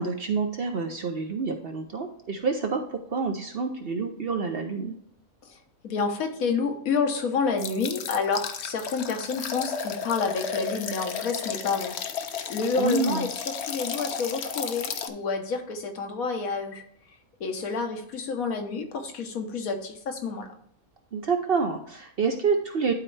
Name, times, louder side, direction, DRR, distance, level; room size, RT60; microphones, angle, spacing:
voice 1, 0.0-4.9 12.8-13.3 21.1-22.9, right 5 dB, 55° right, 5 dB, 0.7 m, -28 dB
voice 2, 5.8-12.0 12.5-16.8 17.4-20.5, left 4 dB, 75° left, 5 dB, 1.4 m, -29 dB
sound 1, 7.6-15.1, left 6 dB, 60° left, 0.8 m, -33 dB
11.5 x 4.3 x 3.2 m, 0.68 s
omnidirectional pair, 1.5 m